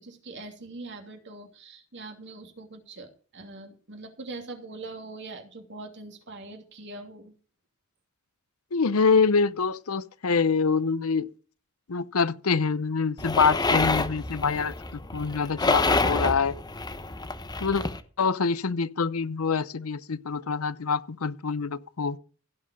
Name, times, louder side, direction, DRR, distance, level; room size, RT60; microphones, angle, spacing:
voice 1, 0.0-7.3, right 2 dB, 55° right, 2.9 m, -42 dB
voice 2, 8.7-11.2 11.9-14.7 15.1-16.5 17.6-17.8 18.2-22.2, left 5 dB, 80° left, 0.7 m, -25 dB
sound 1, 13.2-18.0, left 3 dB, 20° left, 0.9 m, -27 dB
16.0 x 5.8 x 6.4 m
head